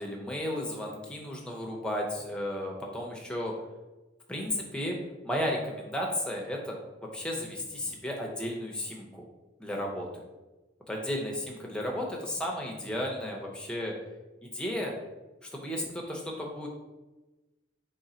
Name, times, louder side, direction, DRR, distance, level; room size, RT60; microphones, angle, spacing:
voice 1, 0.0-3.5 4.3-5.0 5.2-6.8 7.1-9.2 9.6-10.1 10.9-13.9 14.4-14.9 15.5-16.7, left 1 dB, 5° left, -1 dB, 0.6 m, -34 dB
3.8 x 3.2 x 4.3 m, 1.1 s
head